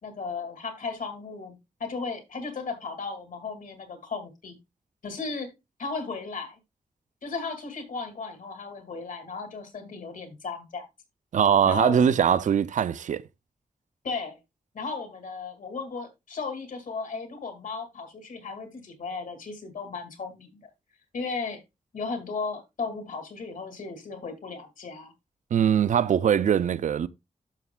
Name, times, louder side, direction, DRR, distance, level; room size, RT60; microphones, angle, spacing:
voice 1, 0.0-4.6 5.0-5.5 5.8-6.6 7.2-10.8 11.7-12.1 14.0-14.4 14.7-20.7 21.1-21.6 21.9-25.1, left 4 dB, 85° left, 2.2 m, -35 dB
voice 2, 11.3-13.2 25.5-27.1, right 8 dB, 70° right, 0.4 m, -22 dB
11.5 x 6.8 x 2.2 m
wide cardioid pair, 175°, 13 cm